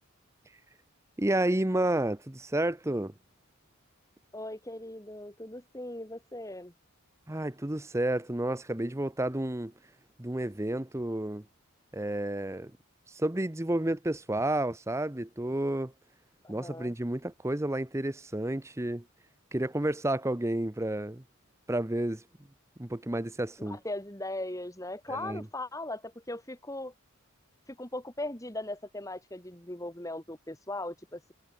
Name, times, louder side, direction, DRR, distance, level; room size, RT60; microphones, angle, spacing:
voice 1, 1.2-3.1 7.3-9.7 10.2-11.4 11.9-12.7 13.1-15.9 16.5-19.0 19.5-21.2 21.7-22.2 22.8-23.8 25.1-25.4, right 1 dB, 15° right, 0.7 m, -30 dB
voice 2, 4.3-6.7 16.4-16.9 23.7-26.9 27.7-31.3, left 1 dB, 15° left, 3.0 m, -39 dB
head